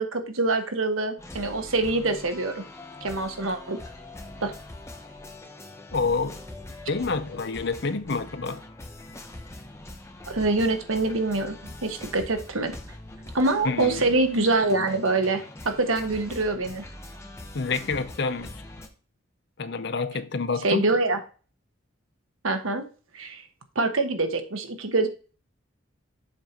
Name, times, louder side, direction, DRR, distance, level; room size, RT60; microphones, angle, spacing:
voice 1, 0.0-2.7 3.0-3.8 4.4-4.5 10.3-11.6 11.8-12.7 13.3-16.9 20.6-21.2 22.4-22.9 23.1-23.4 23.7-25.1, right 2 dB, 85° right, 1.3 m, -25 dB
sound 1, 1.2-18.9, left 1 dB, 15° left, 1.0 m, -43 dB
voice 2, 5.9-6.4 6.9-8.6 13.6-14.0 17.5-18.5 19.6-20.9, left 4 dB, 55° left, 0.7 m, -28 dB
7.3 x 4.5 x 5.1 m
head